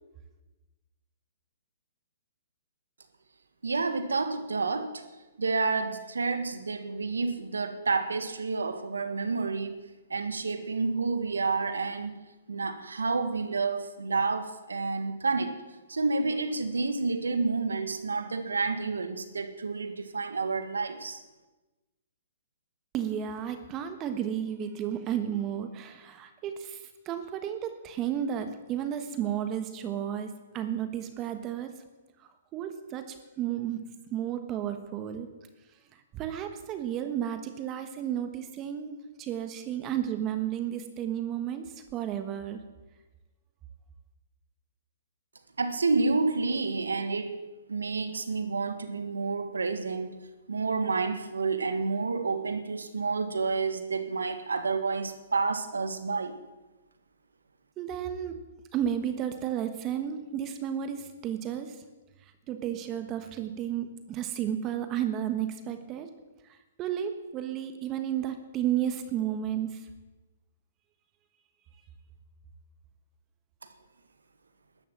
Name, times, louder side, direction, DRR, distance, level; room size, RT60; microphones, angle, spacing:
voice 1, 3.6-5.0 5.4-9.8 10.1-12.2 12.5-15.6 15.9-21.2 45.6-50.2 50.5-56.3, right 4 dB, 85° right, 9 dB, 1.7 m, -29 dB
voice 2, 22.9-31.7 32.2-35.3 36.1-42.6 57.8-58.4 58.7-61.8 62.5-66.1 66.8-70.0, right 10 dB, 25° right, 8 dB, 1.3 m, -33 dB
13.0 x 11.0 x 7.4 m, 1.1 s
hypercardioid pair, 130°, 0 cm